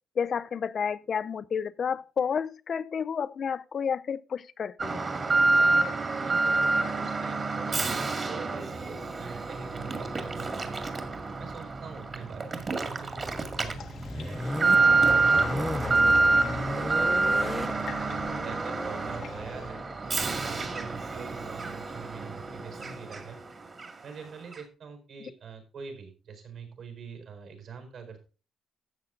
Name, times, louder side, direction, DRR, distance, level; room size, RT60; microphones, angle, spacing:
voice 1, 0.2-5.0, left 7 dB, 50° left, 0.5 m, -30 dB
Alarm, 4.8-23.5 23.8-23.9 24.5-24.6, right 3 dB, 35° right, 2.0 m, -27 dB
voice 2, 5.5-10.8 11.4-16.3 16.6-19.8 20.1-23.4 24.0-28.2, right 6 dB, 65° right, 4.4 m, -44 dB
sound 1, 13.2-20.9, left 1 dB, 10° left, 0.8 m, -36 dB
sound 2, 13.6-19.7, left 8 dB, 65° left, 1.1 m, -44 dB
12.5 x 7.7 x 3.7 m
cardioid pair, 110°, 0 cm